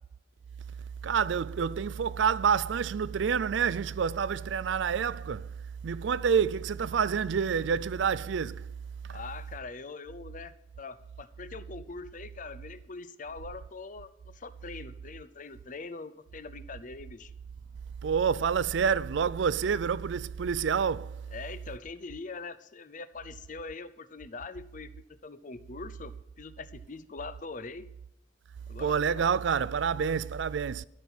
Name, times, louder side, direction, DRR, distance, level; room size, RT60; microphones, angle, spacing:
voice 1, 1.0-5.5 5.8-8.7 18.0-21.2 28.8-30.8, right 6 dB, 70° right, 0.4 m, -28 dB
voice 2, 9.1-17.3 21.3-24.9 25.2-27.9 28.7-29.3, left 4 dB, 45° left, 0.6 m, -43 dB
13.0 x 6.1 x 7.2 m
head